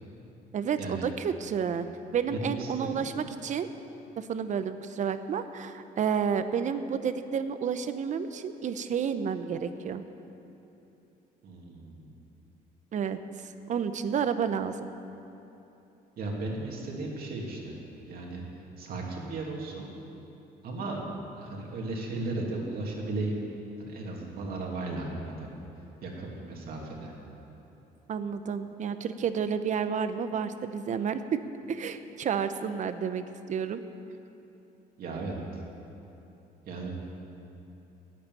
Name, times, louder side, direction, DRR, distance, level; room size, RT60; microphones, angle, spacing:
voice 1, 0.5-1.9 2.1-3.7 4.2-10.0 12.9-14.9 28.1-31.2 31.7-33.8, right 7 dB, 45° right, 11 dB, 0.8 m, -30 dB
voice 2, 2.3-3.0 11.4-12.1 16.2-17.7 18.1-18.4 18.8-19.8 20.6-21.0 21.4-23.3 23.8-25.5 26.0-27.1 35.0-35.6 36.7-37.0, right 2 dB, 65° right, -1 dB, 2.7 m, -35 dB
11.5 x 8.8 x 9.3 m, 3.0 s
cardioid pair, 110°, 17 cm